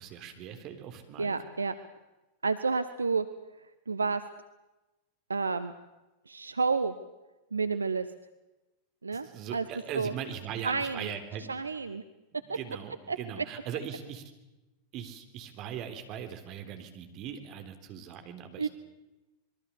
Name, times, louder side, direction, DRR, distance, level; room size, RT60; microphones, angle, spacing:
voice 1, 0.0-1.3 9.2-11.6 12.4-14.2 14.9-18.7, right 8 dB, 40° right, 6 dB, 3.7 m, -40 dB
voice 2, 1.2-1.7 2.4-3.3 3.9-4.2 5.3-5.7 6.3-6.9 7.5-8.1 9.0-9.6 9.9-10.1 10.6-11.1 11.5-12.0 12.5-12.6 13.1-13.2 18.6-18.7, right 4 dB, 75° right, 12 dB, 0.9 m, -30 dB
26.5 x 22.0 x 7.0 m, 1.0 s
figure-of-eight pair, 90°, 0 cm